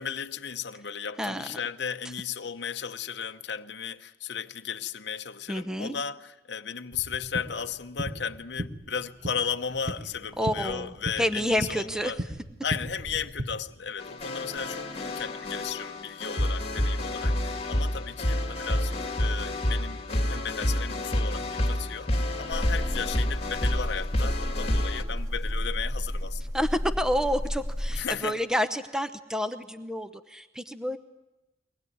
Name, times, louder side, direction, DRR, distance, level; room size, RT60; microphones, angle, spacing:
voice 1, 0.0-12.2 12.6-20.0 20.3-26.4 27.9-28.4, left 7 dB, 65° left, 0.8 m, -35 dB
voice 2, 1.2-1.5 5.5-5.9 10.4-12.1 26.5-31.0, equal, 5° right, 0.8 m, -29 dB
sound 1, 6.9-13.5, right 1 dB, 45° right, 1.4 m, -37 dB
sound 2, 14.0-25.0, left 1 dB, 35° left, 2.4 m, -29 dB
sound 3, 22.5-28.0, equal, 20° right, 2.0 m, -32 dB
23.0 x 19.5 x 9.4 m
head